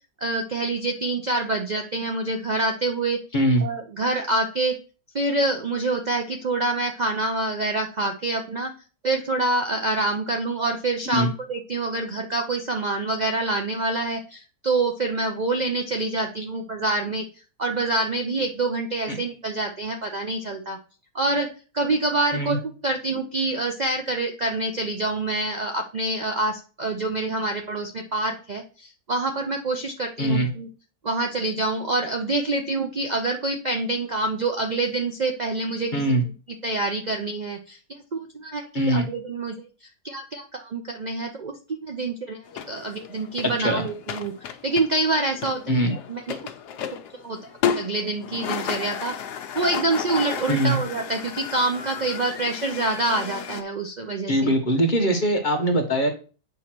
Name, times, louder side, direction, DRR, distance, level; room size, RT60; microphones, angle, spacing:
voice 1, 0.2-3.2 3.6-4.8 5.1-8.7 9.0-17.3 17.6-20.8 21.1-21.5 21.7-22.6 22.8-30.7 31.0-36.0 36.6-37.8 38.1-39.6 40.0-42.4 42.7-44.3 44.6-45.6 46.1-46.4 47.2-49.2 49.5-54.5, right 2 dB, 70° right, 3 dB, 0.4 m, -26 dB
voice 2, 35.9-36.2 38.7-39.1 43.6-43.8 45.7-45.9 50.5-50.8 54.3-56.1, right 1 dB, 35° left, 4 dB, 1.1 m, -22 dB
sound 1, 42.5-53.6, left 8 dB, 85° left, 1.3 m, -33 dB
8.2 x 3.1 x 5.9 m, 0.37 s
omnidirectional pair, 1.7 m